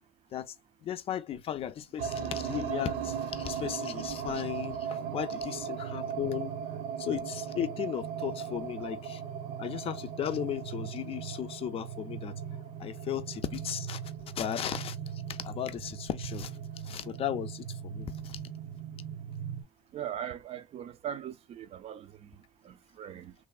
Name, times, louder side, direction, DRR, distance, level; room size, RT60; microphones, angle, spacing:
voice 1, 0.8-6.6 7.0-9.2 9.6-12.3 12.8-14.0 14.4-15.0 15.3-16.5 16.8-18.4, left 10 dB, 40° left, 0.4 m, -35 dB
sound 1, 2.0-19.6, right 8 dB, 85° right, 0.7 m, -38 dB
voice 2, 19.9-23.3, right 10 dB, 45° right, 0.4 m, -40 dB
3.2 x 2.2 x 2.3 m
cardioid pair, 130°, 15 cm